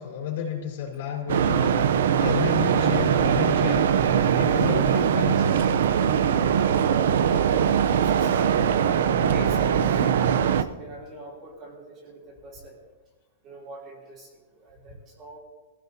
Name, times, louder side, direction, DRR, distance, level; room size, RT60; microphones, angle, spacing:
voice 1, 0.0-4.0 4.3-5.7, left 9 dB, 60° left, -1 dB, 4.1 m, -31 dB
sound 1, 1.3-10.6, right 8 dB, 70° right, 0.7 m, -21 dB
voice 2, 7.0-8.6 9.1-12.8 13.4-15.4, right 1 dB, 25° right, -2 dB, 3.2 m, -42 dB
22.5 x 15.5 x 2.8 m, 1.3 s
supercardioid pair, 170°, 0 cm